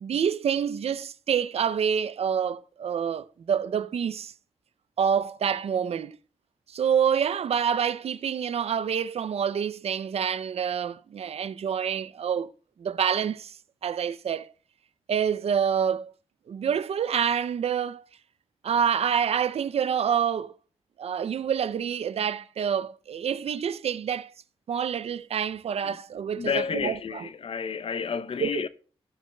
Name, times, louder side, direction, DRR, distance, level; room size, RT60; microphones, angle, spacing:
voice 1, 0.0-4.3 5.0-6.2 6.7-12.5 12.8-13.6 13.8-14.5 15.1-16.1 16.5-18.0 18.6-20.5 21.0-24.3 24.7-27.3 28.4-28.7, right 8 dB, 70° right, 0.4 m, -27 dB
voice 2, 26.4-28.7, left 6 dB, 60° left, 0.6 m, -30 dB
16.5 x 8.4 x 2.2 m
wide cardioid pair, 90°, 11 cm